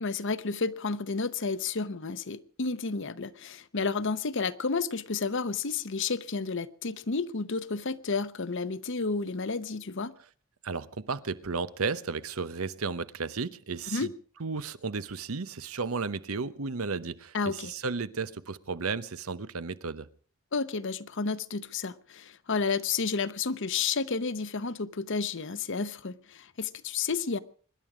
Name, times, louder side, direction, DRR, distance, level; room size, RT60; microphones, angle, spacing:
voice 1, 0.0-10.1 13.9-14.1 17.3-17.7 20.5-27.4, left 4 dB, 60° left, 0.9 m, -31 dB
voice 2, 10.6-14.1 14.4-20.1, right 4 dB, 85° right, 0.9 m, -33 dB
25.0 x 11.0 x 5.0 m
head